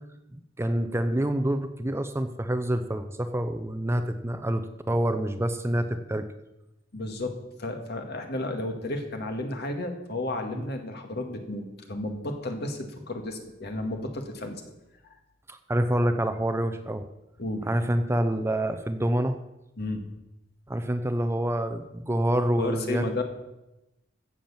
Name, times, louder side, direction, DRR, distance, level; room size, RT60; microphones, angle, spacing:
voice 1, 0.6-6.3 15.5-17.0 17.6-19.4 20.7-23.0, right 1 dB, 15° right, 8 dB, 0.7 m, -27 dB
voice 2, 6.9-7.3 7.6-14.6 17.4-17.7 19.8-20.0 22.6-23.2, left 2 dB, 60° left, 4 dB, 2.1 m, -32 dB
15.5 x 7.3 x 7.2 m, 0.95 s
head